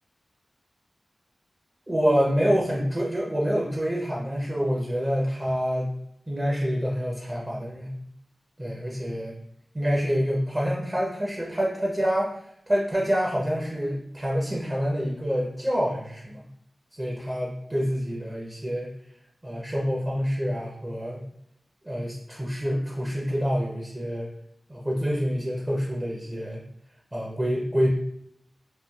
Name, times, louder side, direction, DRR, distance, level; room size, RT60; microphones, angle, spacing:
voice 1, 1.9-5.9 6.3-8.0 8.6-9.3 9.7-12.3 12.7-16.5 16.9-18.9 19.4-21.2 21.8-24.3 24.7-26.6 27.1-27.9, equal, 25° right, -3 dB, 0.6 m, -27 dB
3.1 x 2.3 x 2.3 m, 0.75 s
cardioid pair, 45°, 0 cm